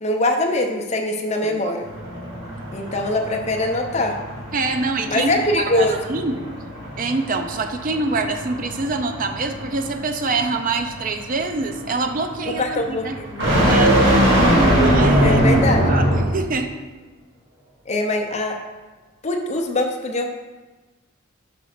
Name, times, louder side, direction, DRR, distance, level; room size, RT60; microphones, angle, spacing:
voice 1, 0.0-1.9 2.7-4.2 5.1-5.9 12.6-13.5 15.2-15.8 17.9-18.6 19.2-20.3, left 2 dB, 35° left, 2 dB, 0.7 m, -22 dB
sound 1, 1.8-16.4, equal, 60° right, 2.3 m, -21 dB
voice 2, 4.5-6.4 7.0-13.2 13.6-13.9 14.8-16.7, right 3 dB, 40° right, 6 dB, 0.5 m, -25 dB
5.1 x 5.1 x 5.9 m, 1.3 s
head